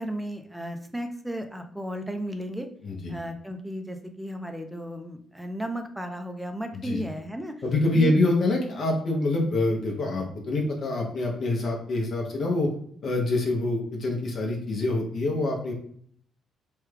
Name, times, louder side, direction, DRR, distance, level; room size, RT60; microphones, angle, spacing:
voice 1, 0.0-2.7 3.1-7.6 7.9-8.1, equal, 5° right, 6 dB, 0.5 m, -34 dB
voice 2, 2.8-3.1 6.7-7.0 7.6-12.7 13.0-15.7, left 2 dB, 55° left, 0 dB, 0.7 m, -26 dB
3.2 x 2.3 x 3.2 m, 0.62 s
cardioid pair, 90°, 0 cm